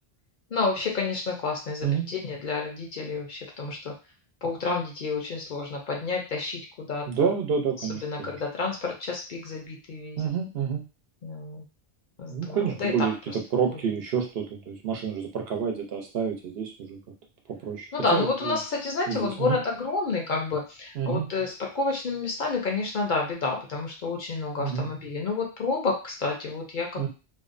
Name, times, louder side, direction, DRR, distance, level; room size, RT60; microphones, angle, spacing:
voice 1, 0.5-3.9 4.4-7.1 7.9-10.2 11.2-11.6 12.2-12.9 13.3-13.4 13.7-13.8 15.6-15.7 17.9-27.1, left 4 dB, 55° left, 1 dB, 0.6 m, -30 dB
voice 2, 7.1-8.4 10.2-10.8 12.3-13.1 13.5-17.0 17.5-18.6 19.1-19.6 21.0-21.3 24.6-24.9 27.0-27.1, right 7 dB, 70° right, 2 dB, 0.8 m, -28 dB
2.5 x 2.0 x 2.5 m, 0.31 s
omnidirectional pair, 1.1 m